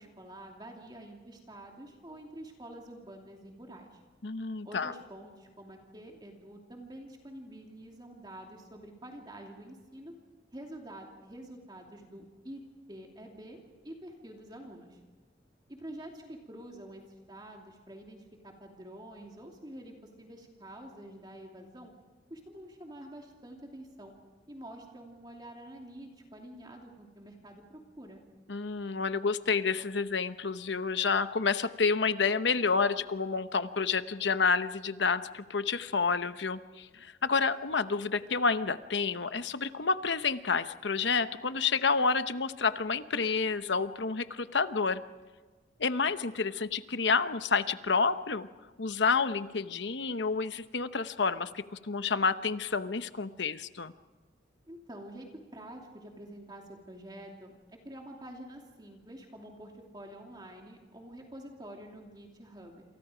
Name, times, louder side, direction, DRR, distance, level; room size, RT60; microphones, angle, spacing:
voice 1, 0.0-4.0 4.6-10.2 10.5-12.6 12.9-15.0 15.7-17.0 17.3-21.9 22.3-24.1 24.5-28.2 54.7-57.5 57.8-62.8, right 1 dB, 25° right, 1 dB, 2.8 m, -47 dB
voice 2, 4.2-4.9 28.5-45.0 45.8-48.5 48.8-53.9, left 5 dB, 70° left, 11 dB, 0.9 m, -29 dB
28.0 x 27.5 x 5.1 m, 1.3 s
head